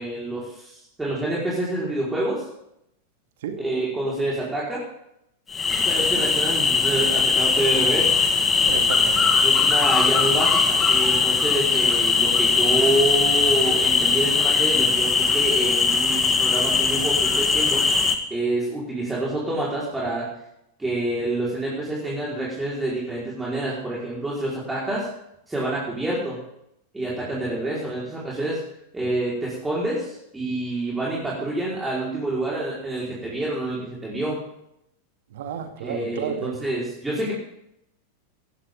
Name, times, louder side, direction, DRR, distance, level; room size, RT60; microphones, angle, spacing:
voice 1, 0.0-2.4 3.6-4.8 5.8-8.2 9.4-17.8 18.3-20.2 20.8-25.1 25.5-26.4 26.9-28.6 28.9-34.4 35.8-37.3, right 1 dB, 10° right, -7 dB, 4.9 m, -27 dB
sound 1, 5.5-18.1, left 5 dB, 20° left, 2.0 m, -20 dB
voice 2, 8.6-9.3 35.3-36.6, right 7 dB, 55° right, 5 dB, 2.2 m, -31 dB
18.0 x 15.0 x 3.9 m, 0.79 s
figure-of-eight pair, 90°, 0 cm